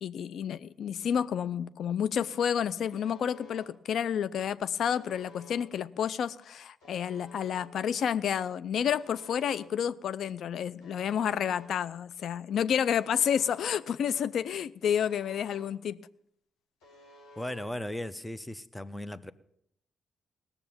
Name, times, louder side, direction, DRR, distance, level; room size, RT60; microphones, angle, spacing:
voice 1, 0.0-16.0, left 8 dB, 65° left, 0.5 m, -30 dB
Alarm, 2.8-3.7 4.8-5.7 6.8-7.7 8.8-9.7 10.8-11.7 12.8-13.7 14.8-15.7 16.8-17.6, left 2 dB, 85° left, 3.2 m, -53 dB
voice 2, 17.4-19.3, left 1 dB, 15° left, 0.8 m, -37 dB
18.0 x 7.0 x 7.0 m
hypercardioid pair, 45°, 0 cm